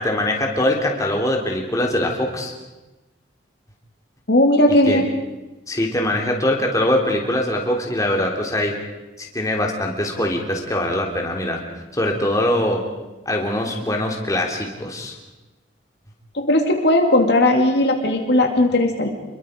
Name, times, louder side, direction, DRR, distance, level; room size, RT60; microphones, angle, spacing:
voice 1, 0.0-2.5 4.9-5.0 5.7-8.7 9.2-11.6 11.9-12.8 13.2-15.1, left 1 dB, 20° left, 1 dB, 3.3 m, -22 dB
voice 2, 4.3-5.1 16.3-19.1, left 1 dB, 60° left, 3 dB, 2.4 m, -17 dB
27.5 x 22.5 x 5.1 m, 1.1 s
head